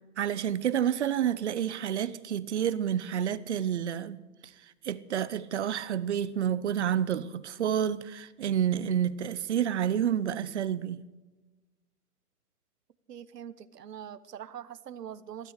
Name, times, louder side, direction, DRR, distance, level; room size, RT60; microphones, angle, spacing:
voice 1, 0.2-4.2 4.8-11.0, right 9 dB, 45° right, 0.8 m, -29 dB
voice 2, 13.1-15.5, right 9 dB, 90° right, 1.2 m, -43 dB
16.0 x 13.0 x 6.5 m
hypercardioid pair, 170°, 46 cm